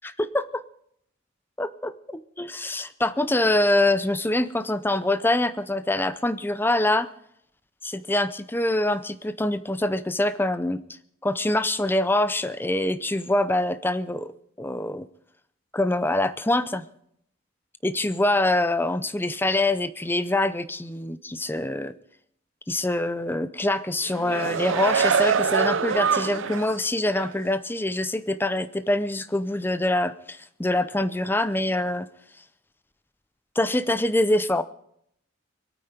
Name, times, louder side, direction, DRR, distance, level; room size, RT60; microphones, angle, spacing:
voice 1, 0.0-0.6 1.6-7.1 7.8-10.8 11.2-15.1 15.7-16.8 17.8-21.9 22.7-32.1 33.6-34.6, left 1 dB, 10° left, 13 dB, 0.6 m, -25 dB
sound 1, 24.0-26.8 27.2-27.3, right 6 dB, 70° right, 0.5 m, -24 dB
24.0 x 9.0 x 5.1 m, 0.72 s
head